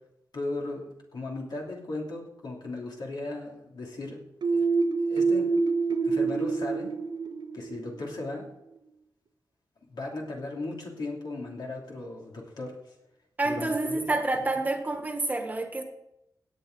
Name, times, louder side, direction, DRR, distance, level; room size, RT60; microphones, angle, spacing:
voice 1, 0.3-4.2 4.5-4.7 5.1-5.5 6.0-6.9 7.5-8.5 9.9-12.9 13.4-14.1 14.4-14.5, left 2 dB, 70° left, -1 dB, 2.9 m, -37 dB
sound 1, 4.4-8.1, right 4 dB, 80° right, 1.0 m, -26 dB
voice 2, 13.4-15.8, right 2 dB, 20° right, 5 dB, 1.4 m, -28 dB
17.0 x 8.8 x 4.0 m, 0.84 s
wide cardioid pair, 165°, 8 cm